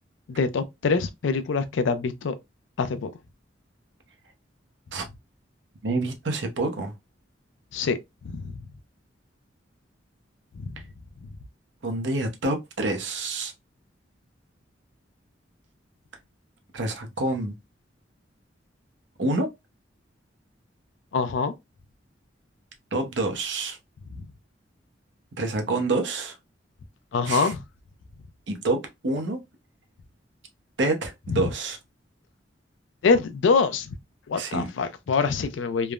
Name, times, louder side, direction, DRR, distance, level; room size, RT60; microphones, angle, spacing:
voice 1, 0.3-2.3 2.8-3.1 7.7-8.6 10.6-10.8 11.2-11.3 21.1-21.5 24.1-24.3 27.1-27.6 31.3-31.5 33.0-33.9 34.3-35.9, left 4 dB, 80° left, 0.4 m, -25 dB
voice 2, 5.8-6.9 11.8-13.5 16.7-17.6 19.2-19.5 22.9-23.8 25.4-26.4 27.3-27.5 28.5-29.4 30.8-31.8 34.4-34.7, right 2 dB, 70° right, 0.7 m, -27 dB
3.2 x 2.0 x 2.3 m
head